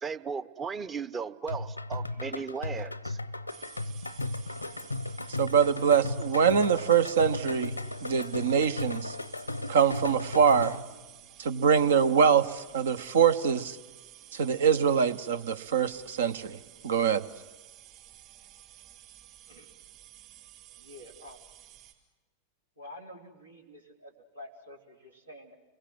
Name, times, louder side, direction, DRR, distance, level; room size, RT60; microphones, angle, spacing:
voice 1, 0.0-3.2, right 6 dB, 20° right, 17 dB, 0.8 m, -36 dB
sound 1, 1.5-11.0, left 2 dB, 85° left, 0.8 m, -36 dB
sound 2, 3.5-21.9, right 14 dB, 40° right, 4.3 m, -53 dB
voice 2, 5.4-7.7 8.0-9.1 9.7-10.8 11.4-13.8 14.3-16.6 16.8-17.2, right 7 dB, 65° right, 14 dB, 1.0 m, -24 dB
voice 3, 20.8-21.4 22.8-25.5, left 1 dB, 85° right, 2 dB, 3.7 m, -48 dB
29.5 x 22.5 x 7.7 m, 1.2 s
figure-of-eight pair, 90°, 0 cm